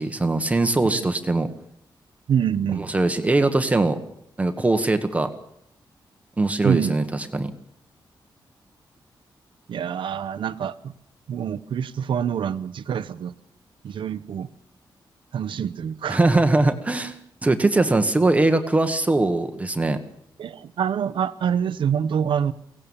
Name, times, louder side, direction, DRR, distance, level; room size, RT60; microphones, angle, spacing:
voice 1, 0.0-1.5 2.9-4.0 4.4-5.3 6.4-7.5 16.1-17.1 17.4-20.0, right 2 dB, 15° right, 7 dB, 1.3 m, -21 dB
voice 2, 2.3-2.9 6.6-6.9 9.7-10.9 11.3-13.3 13.8-14.5 15.3-16.2 20.4-22.5, right 8 dB, 80° right, 14 dB, 1.0 m, -26 dB
24.0 x 17.5 x 7.3 m, 0.76 s
wide cardioid pair, 160°, 8 cm